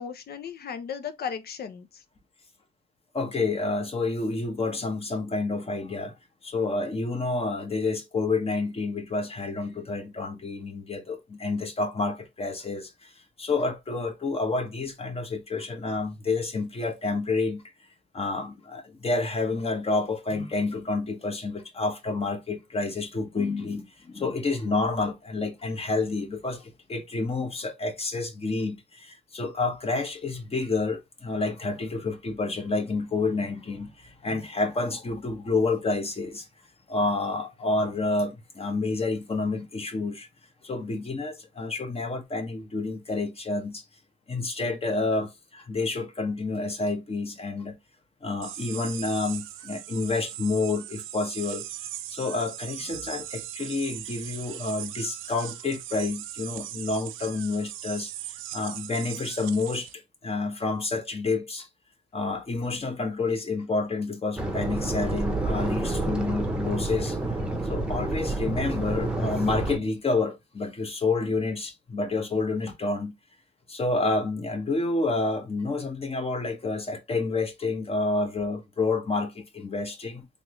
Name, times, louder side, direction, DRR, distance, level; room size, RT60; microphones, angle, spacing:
voice 1, 0.0-2.0, left 7 dB, 50° left, 0.7 m, -36 dB
voice 2, 3.1-6.1 6.4-13.1 13.4-17.6 18.1-36.5 36.9-40.3 40.6-43.8 44.3-47.8 48.2-51.7 52.1-61.7 62.1-67.2 67.6-73.1 73.7-80.3, left 3 dB, 30° left, 1.0 m, -29 dB
sound 1, 48.4-59.9, right 13 dB, 85° right, 0.4 m, -39 dB
sound 2, 64.4-69.8, right 2 dB, 5° right, 0.9 m, -29 dB
3.5 x 2.6 x 3.0 m
cardioid pair, 90°, 20 cm